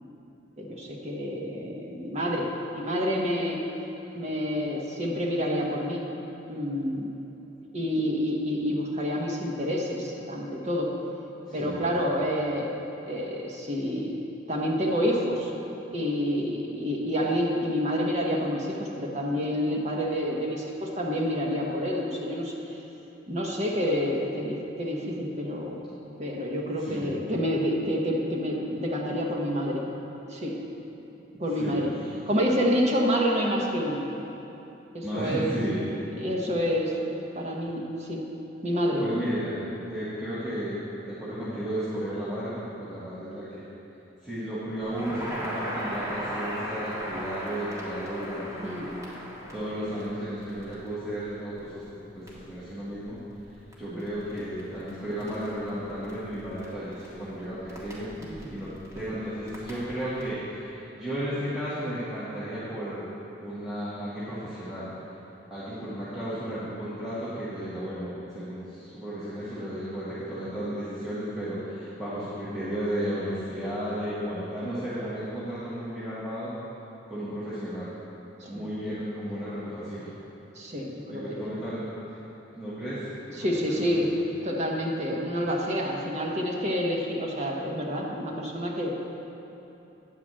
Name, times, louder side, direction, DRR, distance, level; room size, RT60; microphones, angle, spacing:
voice 1, 0.6-3.6 4.1-6.0 6.5-7.1 7.7-10.9 11.5-12.7 13.1-14.1 14.5-15.5 15.9-22.5 23.3-25.8 26.2-29.9 30.3-30.6 31.4-31.9 32.3-34.1 34.9-35.6 36.2-37.0 37.3-38.2 38.6-39.0 48.6-48.9 53.9-54.1 58.2-58.3 78.4-78.7 80.5-81.3 83.4-84.1 84.4-88.9, equal, 40° right, -2 dB, 1.2 m, -28 dB
voice 2, 11.5-11.9 26.8-27.1 31.6-31.8 35.0-35.8 39.0-39.6 39.9-43.7 44.2-48.6 49.5-53.2 53.8-58.1 58.5-63.1 63.4-64.9 65.5-76.5 77.1-77.9 78.5-80.1 81.1-81.8 82.1-82.2 82.5-84.2, equal, 5° right, -13 dB, 1.5 m, -34 dB
Crackle, 44.8-60.3, equal, 20° right, 1.7 m, -39 dB
9.2 x 4.9 x 7.5 m, 2.9 s
head